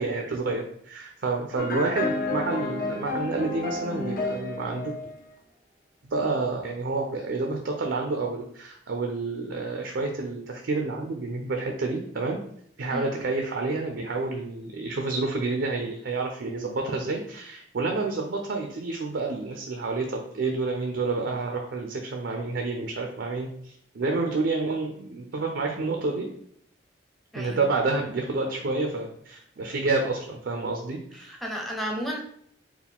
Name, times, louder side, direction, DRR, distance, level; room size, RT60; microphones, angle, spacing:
voice 1, 0.0-4.9 6.1-12.4 12.8-26.3 27.3-31.4, right 3 dB, 70° right, 3 dB, 0.5 m, -29 dB
sound 1, 1.6-5.2, left 3 dB, 50° left, 0.7 m, -31 dB
voice 2, 27.3-27.7 31.2-32.2, equal, ahead, -1 dB, 0.6 m, -33 dB
4.7 x 2.2 x 3.4 m, 0.68 s
head